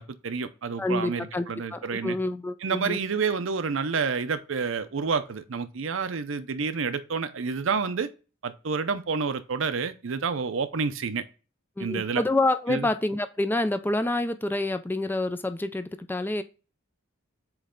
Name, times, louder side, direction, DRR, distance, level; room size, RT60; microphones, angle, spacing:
voice 1, 0.0-2.2 2.6-8.1 8.4-11.2 11.8-12.2 12.7-12.9, right 5 dB, 65° right, 0.6 m, -29 dB
voice 2, 0.8-3.0 11.8-16.4, left 2 dB, 10° left, 0.3 m, -27 dB
7.8 x 3.2 x 3.8 m
head